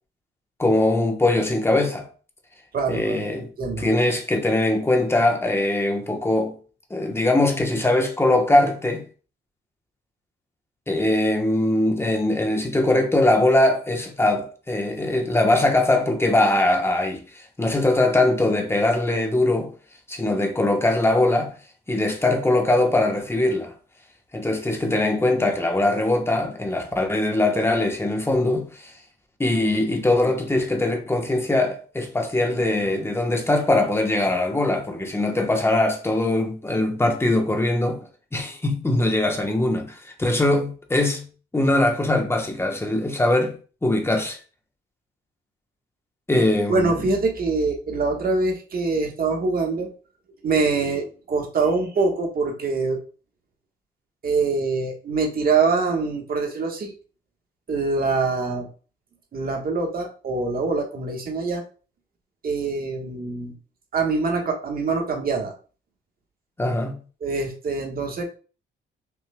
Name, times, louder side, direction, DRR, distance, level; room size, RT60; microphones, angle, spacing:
voice 1, 0.6-2.1 2.9-3.5 3.8-6.6 6.9-9.0 10.9-19.7 20.1-21.6 21.9-23.7 24.3-28.9 29.4-38.0 38.3-41.2 41.5-43.6 43.8-44.4 46.3-47.1 66.6-67.0, left 2 dB, 10° left, 1.0 m, -21 dB
voice 2, 2.7-3.2 3.6-3.9 46.3-46.4 46.7-49.9 50.4-53.0 54.2-56.9 57.7-58.7 59.3-61.6 62.4-63.5 63.9-65.5 67.2-68.2, right 4 dB, 50° right, 1.3 m, -24 dB
5.8 x 3.2 x 2.2 m
cardioid pair, 90°, 20 cm